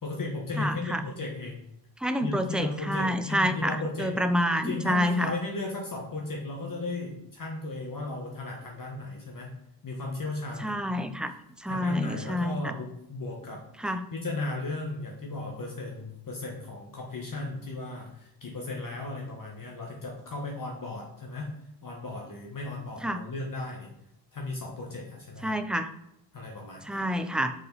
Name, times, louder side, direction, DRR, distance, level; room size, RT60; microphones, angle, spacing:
voice 1, 0.0-1.6 2.2-4.1 4.5-9.5 9.8-11.3 11.7-13.6 14.1-21.5 21.8-23.9 24.3-25.5 26.3-27.0, left 2 dB, 45° left, -1 dB, 1.4 m, -35 dB
voice 2, 0.6-1.0 2.0-5.3 10.6-11.3 11.6-12.7 13.8-14.0 23.0-23.2 25.4-25.9 26.9-27.5, equal, ahead, 9 dB, 0.5 m, -28 dB
5.1 x 4.6 x 4.0 m, 0.80 s
cardioid pair, 65°, 46 cm